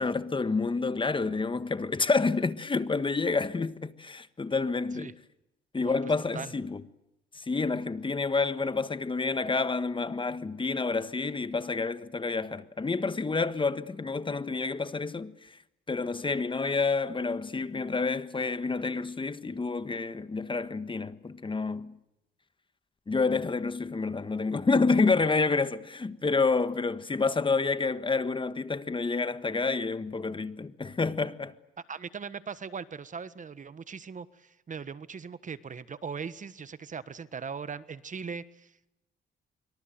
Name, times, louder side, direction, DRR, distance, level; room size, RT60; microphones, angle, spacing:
voice 1, 0.0-5.1 5.7-6.8 7.3-15.6 15.9-21.9 23.1-31.5, left 4 dB, 25° left, 1.5 m, -29 dB
voice 2, 31.9-38.9, right 6 dB, 40° right, 1.4 m, -39 dB
26.0 x 24.0 x 7.9 m
cardioid pair, 90°, 20 cm